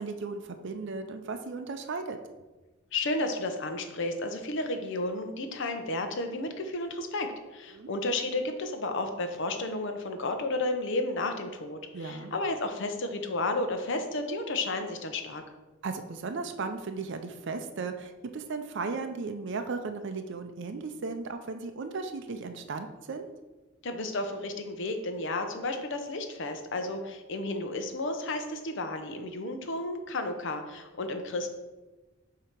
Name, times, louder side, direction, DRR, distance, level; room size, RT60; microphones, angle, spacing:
voice 1, 0.0-2.2 7.7-7.9 11.9-12.3 15.8-23.3, right 4 dB, 60° right, 7 dB, 0.5 m, -36 dB
voice 2, 2.9-15.4 23.8-31.5, left 2 dB, 60° left, 6 dB, 0.7 m, -32 dB
7.4 x 2.9 x 5.1 m, 1.1 s
head